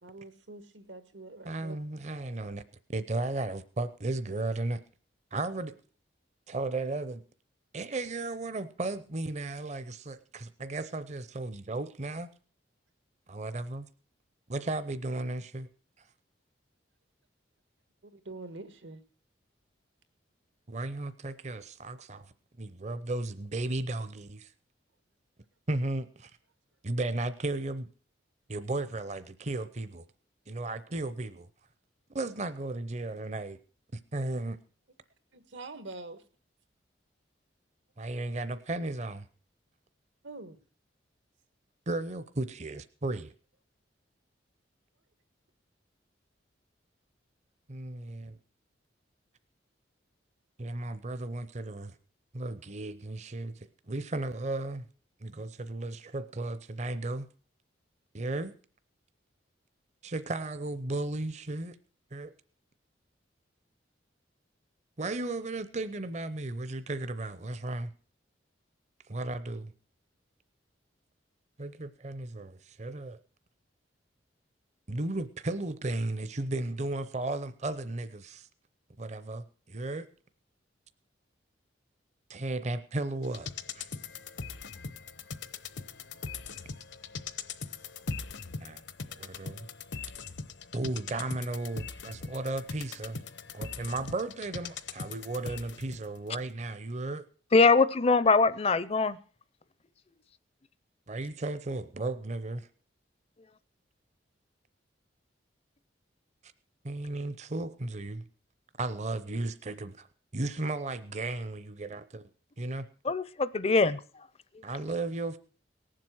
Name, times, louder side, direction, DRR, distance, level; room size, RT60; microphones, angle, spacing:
voice 1, 0.0-1.8 18.0-19.0 35.3-36.2 40.2-40.6, right 2 dB, 80° right, 11 dB, 1.5 m, -45 dB
voice 2, 1.4-2.6 2.9-4.8 5.3-5.8 6.5-7.2 7.7-12.3 13.3-13.9 14.5-15.7 20.7-22.3 22.6-24.5 25.7-26.3 26.8-27.9 28.5-30.0 30.5-31.5 32.1-33.6 33.9-34.6 38.0-39.3 41.9-43.3 47.7-48.4 50.6-51.9 52.3-54.9 55.2-57.3 58.1-58.5 60.0-61.8 62.1-62.3 65.0-67.9 69.1-69.7 71.6-73.2 74.9-78.5 79.0-80.1 82.3-83.5 83.7-83.9 88.6-88.8 89.2-89.7 90.7-93.2 93.5-97.2 101.1-102.7 106.8-108.2 108.8-110.1 110.3-112.3 112.6-112.9 114.6-115.4, right 2 dB, 35° right, 13 dB, 0.7 m, -35 dB
sound 1, 83.2-96.1 96.4-96.5, left 4 dB, 75° left, 0.9 m, -41 dB
voice 3, 97.5-99.2 113.0-114.0, left 4 dB, 30° left, 16 dB, 0.5 m, -23 dB
18.5 x 7.6 x 6.3 m, 0.41 s
head